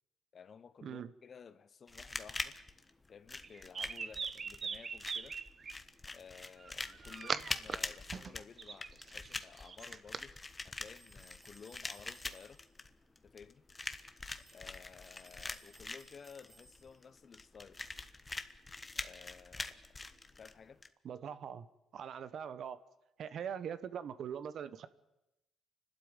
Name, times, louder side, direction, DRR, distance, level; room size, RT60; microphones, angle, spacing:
voice 1, 0.3-2.6 3.1-5.4 6.1-10.3 10.6-12.6 13.2-13.6 14.5-17.8 18.9-20.0 20.4-20.8, left 6 dB, 50° left, 1.1 m, -55 dB
sound 1, 1.9-20.9, left 3 dB, 20° left, 1.3 m, -44 dB
sound 2, 3.4-5.7 6.6-7.8 8.1-10.2, right 5 dB, 45° right, 0.9 m, -41 dB
sound 3, 10.9-12.8 14.3-17.2, right 2 dB, 20° right, 2.7 m, -63 dB
voice 2, 21.0-21.7 21.9-22.8 23.2-24.9, right 8 dB, 65° right, 1.2 m, -42 dB
28.5 x 12.5 x 9.7 m
cardioid pair, 90°, 0 cm